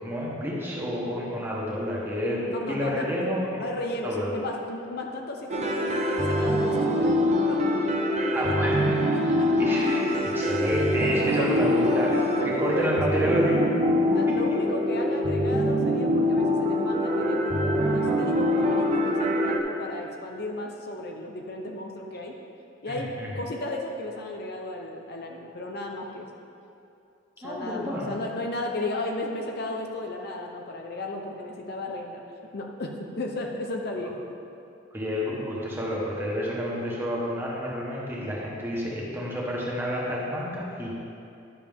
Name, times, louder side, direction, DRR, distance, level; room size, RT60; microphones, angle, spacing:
voice 1, 0.0-2.4 2.7-3.6 4.0-4.3 8.3-8.8 9.6-10.1 10.3-13.7 22.9-23.3 27.4-28.1 34.9-40.9, equal, 10° right, -5 dB, 1.5 m, -29 dB
voice 2, 2.5-3.3 3.6-7.6 7.9-8.6 9.1-10.5 11.0-11.6 12.2-13.2 14.1-22.3 22.8-23.1 23.4-26.3 27.4-32.2 32.5-34.2, left 2 dB, 60° left, 1 dB, 0.7 m, -35 dB
sound 1, 5.5-19.6, equal, 35° right, 0.6 m, -24 dB
11.0 x 6.5 x 3.6 m, 2.6 s
head